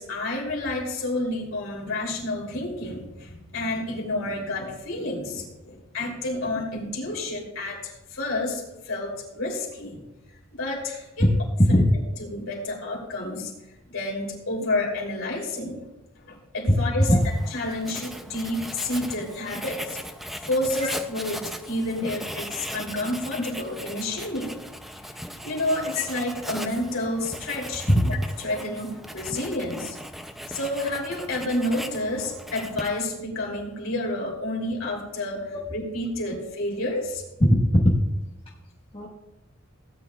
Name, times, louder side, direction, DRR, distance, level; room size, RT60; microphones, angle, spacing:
voice 1, 0.0-10.0 10.5-11.1 11.7-11.8 12.2-13.5 13.9-15.9 16.3-20.0 20.4-24.5 25.4-30.0 30.5-37.2, left 1 dB, 65° left, -1 dB, 3.2 m, -30 dB
Writing, 17.0-33.2, equal, ahead, 0.5 m, -38 dB
voice 2, 37.4-37.9 38.9-39.1, equal, 25° left, -5 dB, 1.3 m, -18 dB
17.0 x 9.6 x 2.4 m, 1.0 s
head